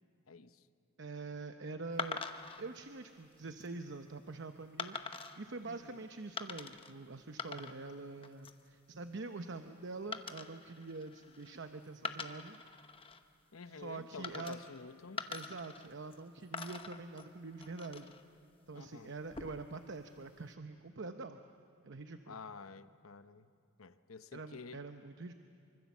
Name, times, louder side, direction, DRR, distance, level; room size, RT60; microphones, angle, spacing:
voice 1, 0.3-0.6 5.6-6.0 13.5-15.3 18.7-19.1 22.3-23.5 23.8-24.8, left 4 dB, 90° left, 0.9 m, -50 dB
voice 2, 1.0-2.2 2.6-12.6 13.6-14.6 15.3-18.1 18.7-21.4 21.8-22.4 24.3-25.3, right 3 dB, 60° right, 0.8 m, -45 dB
sound 1, 2.0-2.6 3.3-3.7 4.8-5.4 6.4-6.9 7.2-8.0 8.2-8.7 10.1-11.6 12.0-13.2 14.2-14.8 15.2-16.2 16.5-18.2 19.2-19.8, left 4 dB, 25° left, 1.0 m, -44 dB
25.0 x 25.0 x 7.3 m
head